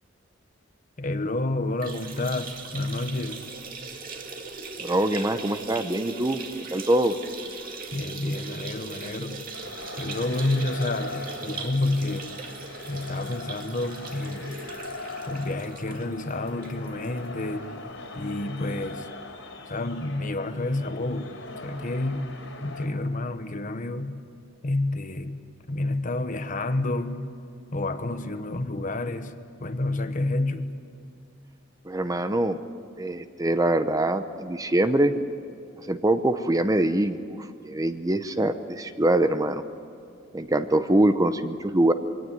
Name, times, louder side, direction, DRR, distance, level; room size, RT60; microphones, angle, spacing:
voice 1, 1.0-3.4 7.9-9.4 10.0-12.3 12.9-14.6 15.3-17.7 18.1-19.1 19.7-21.3 21.6-22.3 22.6-24.1 24.6-25.4 25.7-27.3 27.7-29.3 29.6-30.7, left 2 dB, 40° left, 10 dB, 1.1 m, -29 dB
sound 1, 1.7-17.1 17.5-17.6 17.9-18.0 19.0-19.1, right 4 dB, 45° right, 2.3 m, -39 dB
voice 2, 4.8-6.4 6.7-7.1 31.9-32.6 33.0-35.1 35.9-39.6 40.3-41.9, right 1 dB, 20° right, 10 dB, 0.8 m, -24 dB
sound 2, 9.5-22.9, left 2 dB, 80° left, 4.1 m, -40 dB
23.5 x 17.5 x 9.1 m, 2.5 s
head